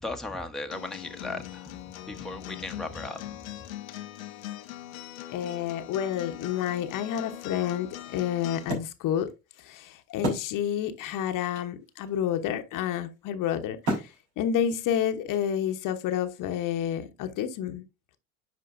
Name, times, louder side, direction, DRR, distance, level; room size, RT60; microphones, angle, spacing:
voice 1, 0.0-1.8 2.1-3.4, left 2 dB, ahead, 1.0 m, -36 dB
Acoustic guitar, 0.7-8.7, left 13 dB, 85° left, 0.9 m, -41 dB
voice 2, 5.3-9.3 9.6-17.8, left 9 dB, 50° left, 1.0 m, -29 dB
Wood, 6.6-11.0 11.3-11.4 11.6-15.9, right 1 dB, 70° right, 4.1 m, -37 dB
10.5 x 4.5 x 2.6 m
hypercardioid pair, 70°, 40 cm